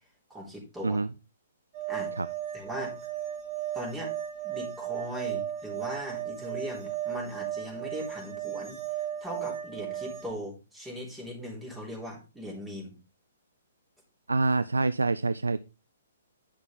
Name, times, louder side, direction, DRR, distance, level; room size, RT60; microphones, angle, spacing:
voice 1, 0.3-1.0 1.9-2.1 2.5-3.0 3.7-4.1 4.4-12.9, equal, 10° right, -3 dB, 3.4 m, -39 dB
sound 1, 1.7-10.3, right 11 dB, 35° right, 3.4 m, -35 dB
voice 2, 14.3-15.6, right 3 dB, 85° right, 15 dB, 0.4 m, -26 dB
9.8 x 6.0 x 3.7 m, 0.31 s
figure-of-eight pair, 125°, 0 cm